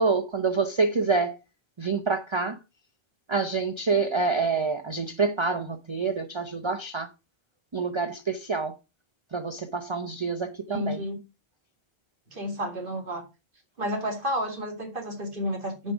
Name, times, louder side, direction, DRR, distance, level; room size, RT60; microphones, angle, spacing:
voice 1, 0.0-1.4 1.8-2.6 3.3-7.1 7.7-8.8 9.3-11.0, right 4 dB, 30° right, 0.7 m, -27 dB
voice 2, 10.7-11.2 12.3-13.2 13.8-15.9, equal, 55° right, 2.5 m, -31 dB
9.3 x 5.3 x 5.1 m
omnidirectional pair, 1.1 m